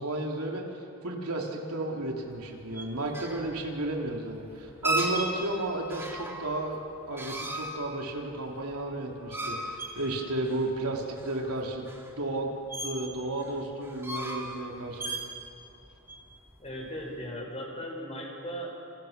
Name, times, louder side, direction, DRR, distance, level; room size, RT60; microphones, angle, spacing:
voice 1, 0.0-6.8 7.1-11.9 12.2-12.5 12.8-15.2, right 2 dB, 75° right, 0 dB, 3.5 m, -33 dB
sound 1, 2.3-17.2, right 1 dB, 10° right, 3.2 m, -36 dB
voice 2, 16.6-18.7, equal, 30° left, -1 dB, 6.5 m, -37 dB
29.5 x 28.0 x 6.9 m, 2.8 s
head